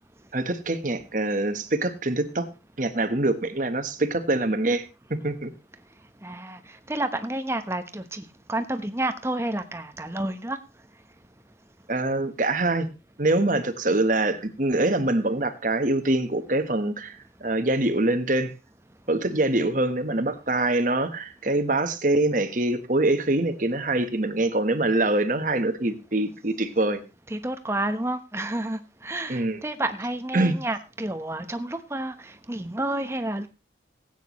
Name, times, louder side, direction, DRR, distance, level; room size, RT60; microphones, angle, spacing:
voice 1, 0.3-2.5 2.8-4.9 5.2-5.5 11.9-12.9 13.2-18.5 19.1-27.0 29.3-29.6 30.3-30.6, right 2 dB, 45° right, 9 dB, 1.3 m, -24 dB
voice 2, 6.2-6.6 6.9-10.6 27.3-33.5, right 1 dB, 15° right, 8 dB, 1.0 m, -30 dB
18.0 x 9.1 x 3.1 m, 0.29 s
head